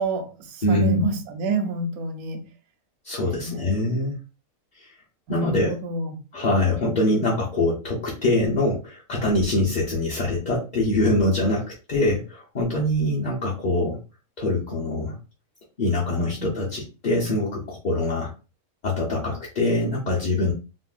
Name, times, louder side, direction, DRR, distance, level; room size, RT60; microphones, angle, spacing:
voice 1, 0.0-2.4 3.2-3.7 5.3-6.2 16.2-16.5, right 2 dB, 80° right, 1.1 m, -29 dB
voice 2, 0.6-1.1 3.0-4.2 4.8-4.9 5.3-5.7 6.3-14.0 14.4-15.1 15.8-18.3 18.8-20.5, left 1 dB, 45° left, 0.6 m, -24 dB
3.7 x 2.1 x 2.4 m
omnidirectional pair, 1.5 m